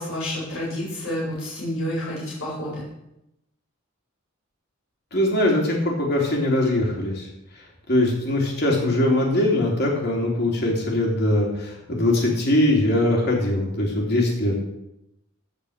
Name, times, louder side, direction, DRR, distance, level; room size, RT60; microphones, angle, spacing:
voice 1, 0.0-2.8, left 1 dB, 80° left, -6 dB, 4.4 m, -29 dB
voice 2, 5.1-7.2 7.9-14.5, left 1 dB, 50° left, -1 dB, 3.0 m, -21 dB
15.5 x 5.4 x 6.5 m, 0.87 s
head